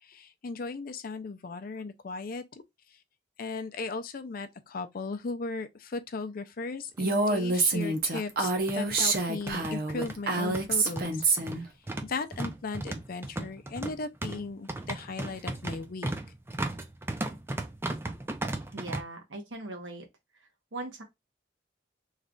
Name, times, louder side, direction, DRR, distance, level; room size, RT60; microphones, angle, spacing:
voice 1, 0.0-2.6 3.4-11.3 12.0-16.1, left 4 dB, 55° left, 0.5 m, -37 dB
sound 1, 7.0-7.1 7.3-7.4 8.3-19.0, right 2 dB, 15° right, 0.4 m, -36 dB
Female speech woman speaking, 7.0-11.6, right 3 dB, 55° right, 0.7 m, -27 dB
voice 2, 18.7-20.0 20.7-21.0, right 2 dB, 85° right, 1.1 m, -39 dB
3.2 x 2.4 x 3.7 m
head